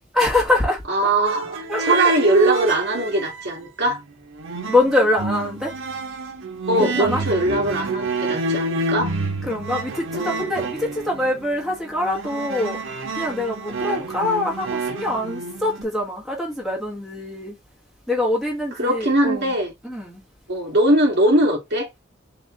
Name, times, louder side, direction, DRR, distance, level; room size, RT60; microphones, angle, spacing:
voice 1, 0.1-0.8 1.7-2.0 4.7-5.7 6.8-7.2 9.4-17.6 18.1-19.5 19.8-20.2, left 2 dB, ahead, 1.7 m, -24 dB
voice 2, 0.9-4.0 6.7-9.1 10.1-10.5 18.8-19.7 20.5-21.9, right 1 dB, 55° right, 2.0 m, -21 dB
sound 1, 1.2-3.5 3.8-15.8, right 3 dB, 80° right, 0.8 m, -28 dB
4.2 x 2.9 x 3.7 m
head